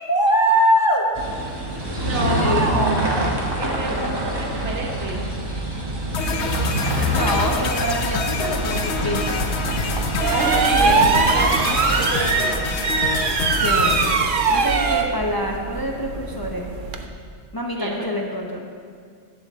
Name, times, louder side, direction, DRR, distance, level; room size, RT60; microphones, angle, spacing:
voice 1, 0.1-1.0 2.2-2.7 7.1-9.4 13.6-14.1 14.5-16.7 17.5-18.7, equal, 25° left, -1 dB, 0.6 m, -23 dB
sound 1, 1.1-12.1, right 1 dB, 20° right, 1.1 m, -26 dB
voice 2, 2.0-5.3 10.3-11.1 11.3-12.7 17.8-18.1, right 2 dB, 90° right, -1 dB, 1.7 m, -27 dB
sound 2, 6.1-14.2, left 5 dB, 75° left, 1.0 m, -26 dB
sound 3, 8.5-17.0, right 5 dB, 55° right, 0.7 m, -22 dB
11.0 x 3.8 x 7.3 m, 2.1 s
omnidirectional pair, 1.2 m